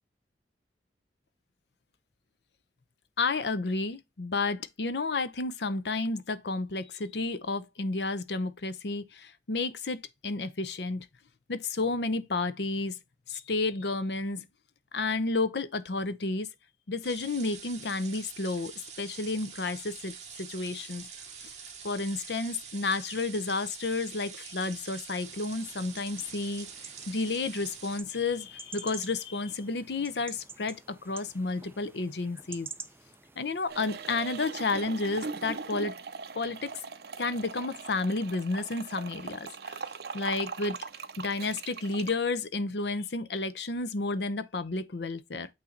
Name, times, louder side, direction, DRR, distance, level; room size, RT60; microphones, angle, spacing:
voice 1, 3.2-11.1 11.5-13.0 13.3-14.5 14.9-16.5 16.9-20.1 20.5-21.1 21.4-21.5 21.8-26.7 27.1-32.7 33.4-35.9 36.3-36.7 37.2-39.8 40.1-40.8 41.2-45.5, left 3 dB, 70° left, 0.7 m, -31 dB
sound 1, 17.0-28.0, right 7 dB, 40° right, 1.5 m, -45 dB
sound 2, 25.2-34.2, right 4 dB, 15° right, 0.4 m, -49 dB
sound 3, 33.7-42.1, right 5 dB, 60° right, 0.6 m, -40 dB
8.5 x 2.9 x 3.8 m
head